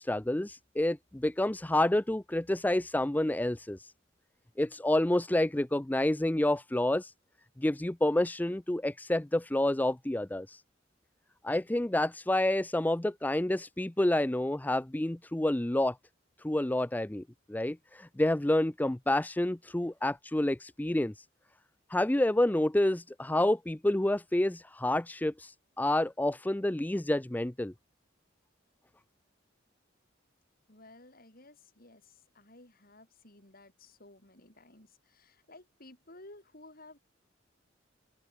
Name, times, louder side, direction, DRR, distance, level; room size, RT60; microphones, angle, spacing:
voice 1, 0.0-3.9 4.6-7.1 7.6-10.6 11.4-16.0 16.4-17.2 17.5-21.2 21.9-27.7, left 1 dB, 10° left, 0.5 m, -29 dB
voice 2, 30.7-37.0, left 2 dB, 50° left, 6.2 m, -55 dB
open air
head